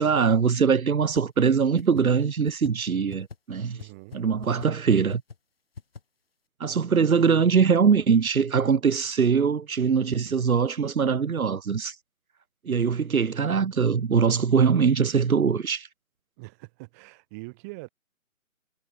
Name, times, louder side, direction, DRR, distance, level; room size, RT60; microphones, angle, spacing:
voice 1, 0.0-3.8 4.1-5.2 6.6-11.9 12.6-15.9, right 6 dB, 85° right, 1.2 m, -22 dB
sound 1, 1.2-1.3 1.5-1.6 1.8-2.0 2.5-2.7 3.1-3.4 3.8-3.9 4.1-4.2 4.4-4.7 5.1-5.4 5.8-6.0, left 5 dB, 45° left, 5.0 m, -40 dB
voice 2, 3.7-4.2 16.4-17.9, right 27 dB, 10° right, 4.9 m, -43 dB
hypercardioid pair, 175°, 41 cm